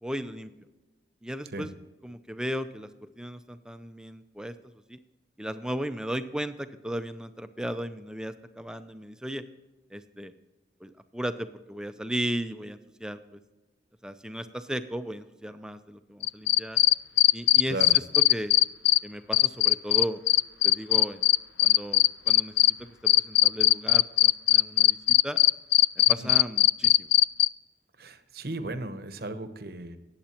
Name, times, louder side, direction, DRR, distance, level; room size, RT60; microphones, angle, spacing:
voice 1, 0.0-0.5 1.2-1.7 2.0-2.9 3.2-4.5 4.9-5.0 5.4-9.4 9.9-10.3 10.8-13.4 14.0-16.8 17.3-18.5 19.0-20.2 20.6-21.3 21.6-25.4 26.0-27.1, equal, 5° right, 10 dB, 0.5 m, -35 dB
sound 1, 16.2-19.0 19.3-22.7 23.1-27.5, left 16 dB, 80° left, 0.3 m, -19 dB
voice 2, 28.0-30.0, right 2 dB, 55° right, 10 dB, 0.9 m, -35 dB
19.0 x 8.1 x 3.0 m, 1.1 s
head